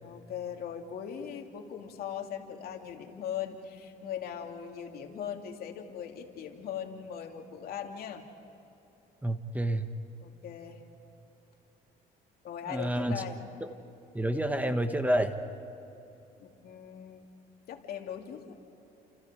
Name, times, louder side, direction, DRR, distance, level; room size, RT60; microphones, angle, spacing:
voice 1, 0.0-8.2 10.2-10.8 12.4-13.4 16.4-17.3 17.7-18.6, left 8 dB, 65° left, 3 dB, 2.6 m, -40 dB
voice 2, 9.2-9.9 12.7-13.2 14.1-15.4, right 1 dB, 10° right, 8 dB, 1.3 m, -29 dB
30.0 x 28.0 x 5.0 m, 2.9 s
cardioid pair, 110°, 17 cm